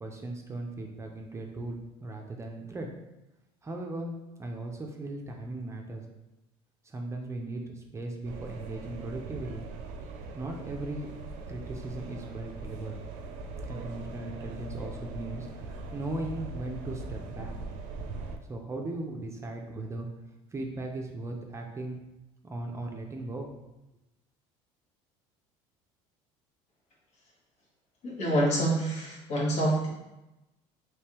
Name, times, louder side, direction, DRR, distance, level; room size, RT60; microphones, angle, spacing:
voice 1, 0.0-2.9 3.6-6.0 6.8-9.7 10.4-11.1 11.5-12.9 13.6-17.5 18.5-20.1 20.5-22.0 22.4-23.5, right 2 dB, 20° right, 1 dB, 0.5 m, -37 dB
sound 1, 8.2-18.4, right 2 dB, 80° right, 0.5 m, -41 dB
voice 2, 28.0-29.9, right 1 dB, 60° left, -4 dB, 1.3 m, -27 dB
3.3 x 3.2 x 3.0 m, 0.97 s
supercardioid pair, 100°, 13 cm